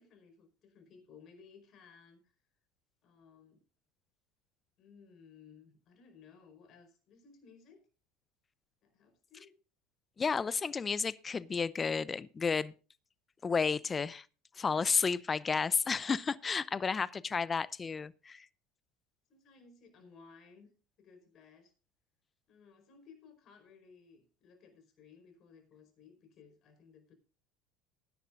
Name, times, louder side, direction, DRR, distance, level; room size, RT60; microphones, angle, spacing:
voice 1, 0.0-2.4 3.0-3.6 4.8-7.9 8.8-9.6 19.3-21.7 22.5-27.1, left 5 dB, 50° left, 4.9 m, -59 dB
voice 2, 10.2-12.7 13.4-14.2 14.6-18.5, left 5 dB, 25° left, 0.6 m, -32 dB
19.0 x 10.5 x 2.5 m
hypercardioid pair, 85°, 0 cm